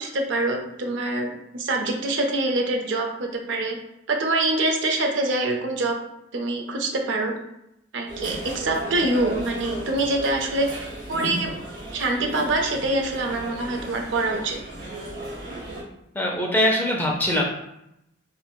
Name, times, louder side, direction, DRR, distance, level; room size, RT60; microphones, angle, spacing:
voice 1, 0.0-3.8 4.1-6.0 6.3-7.3 7.9-11.5 11.9-14.6, right 2 dB, 65° right, 2 dB, 0.5 m, -25 dB
sound 1, 8.1-15.8, right 1 dB, 45° right, 0.9 m, -35 dB
voice 2, 16.1-17.4, equal, 10° left, -1 dB, 0.4 m, -22 dB
4.3 x 2.1 x 2.2 m, 0.83 s
head